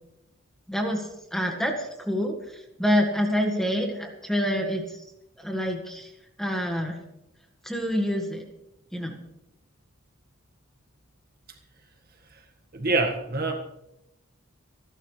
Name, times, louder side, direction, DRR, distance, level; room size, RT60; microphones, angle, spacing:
voice 1, 0.7-5.0 5.4-6.1 6.4-7.0 7.6-8.4 8.9-9.2, equal, ahead, 2 dB, 1.7 m, -27 dB
voice 2, 12.7-13.5, right 3 dB, 45° right, 3 dB, 1.7 m, -25 dB
27.5 x 12.0 x 3.3 m, 0.87 s
head